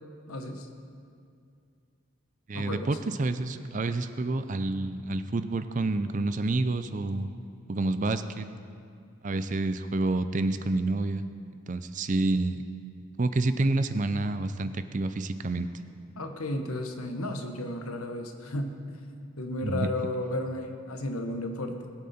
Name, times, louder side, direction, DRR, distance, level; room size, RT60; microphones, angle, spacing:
voice 1, 0.3-0.7 2.5-3.0 16.2-18.7 19.4-21.9, left 1 dB, 80° left, 5 dB, 1.2 m, -33 dB
voice 2, 2.5-7.3 7.7-8.5 9.2-11.2 11.7-12.6 13.2-15.7 19.6-19.9, right 2 dB, 35° right, 11 dB, 0.5 m, -28 dB
20.5 x 8.6 x 4.3 m, 2.4 s
head